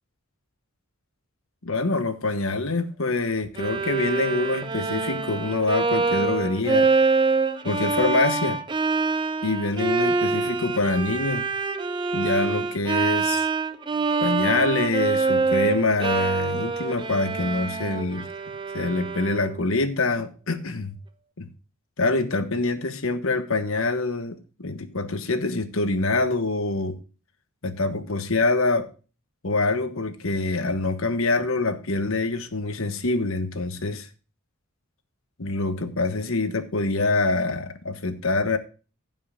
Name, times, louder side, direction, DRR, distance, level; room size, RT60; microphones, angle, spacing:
voice 1, 1.6-6.9 7.6-8.6 9.4-11.5 12.1-13.5 14.2-18.3 18.7-20.9 21.4-21.5 22.0-27.0 27.6-28.9 29.4-34.1 35.4-38.6, left 3 dB, 65° left, 1.3 m, -25 dB
Bowed string instrument, 3.6-19.6, right 4 dB, 20° right, 0.7 m, -25 dB
15.0 x 5.6 x 4.2 m
head